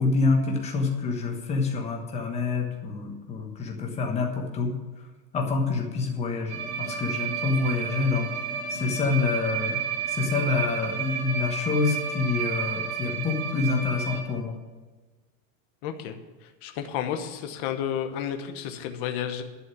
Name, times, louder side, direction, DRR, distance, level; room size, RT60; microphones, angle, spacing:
voice 1, 0.0-4.7 5.3-8.3 8.7-9.8 10.1-14.5, left 4 dB, 15° left, 2 dB, 1.2 m, -27 dB
sound 1, 6.5-14.2, right 6 dB, 60° right, 3.2 m, -31 dB
voice 2, 15.8-16.2 16.6-19.4, left 9 dB, 30° left, 6 dB, 1.0 m, -31 dB
11.0 x 6.3 x 9.1 m, 1.3 s
supercardioid pair, 175°, 48 cm